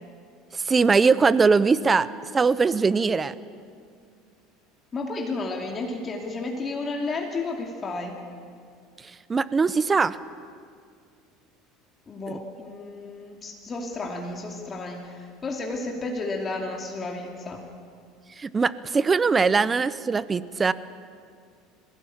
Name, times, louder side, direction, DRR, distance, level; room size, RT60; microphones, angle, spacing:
voice 1, 0.5-2.1 2.3-3.3 9.3-10.2 12.3-12.4 18.4-20.7, right 4 dB, 20° right, 17 dB, 0.7 m, -21 dB
voice 2, 4.9-8.2 12.1-17.7, left 3 dB, 30° left, 1 dB, 2.5 m, -32 dB
21.0 x 17.0 x 8.8 m, 2.2 s
supercardioid pair, 120°, 0 cm